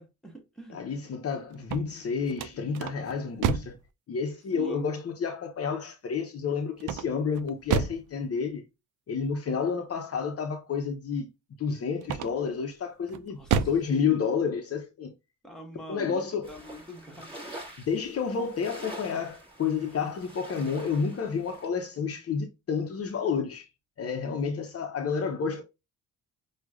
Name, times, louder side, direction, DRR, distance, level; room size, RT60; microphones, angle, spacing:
voice 1, 0.0-0.8 4.5-4.9 13.4-13.7 15.4-17.3, right 2 dB, ahead, 1.3 m, -44 dB
voice 2, 0.7-3.8 4.1-8.7 9.1-11.3 11.6-15.1 15.9-16.5 17.9-23.7 24.0-25.6, left 6 dB, 45° left, 0.8 m, -30 dB
sound 1, 1.5-3.9 6.8-8.1 12.0-12.6 13.1-13.9, right 7 dB, 65° right, 0.5 m, -30 dB
sound 2, 16.4-21.7, right 1 dB, 15° right, 1.7 m, -46 dB
6.1 x 2.4 x 2.3 m
cardioid pair, 95°, 33 cm